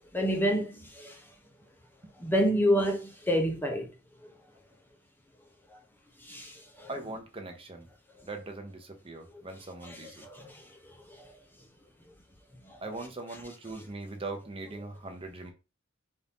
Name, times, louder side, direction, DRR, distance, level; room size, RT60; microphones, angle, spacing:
voice 1, 0.1-1.2 2.2-3.9 4.2-4.3 6.2-6.9 9.8-11.3 12.6-12.8, equal, 10° left, 0.6 m, -29 dB
voice 2, 6.9-7.9 8.2-10.2 12.8-15.5, right 2 dB, 30° right, 0.8 m, -40 dB
4.2 x 2.6 x 3.5 m
head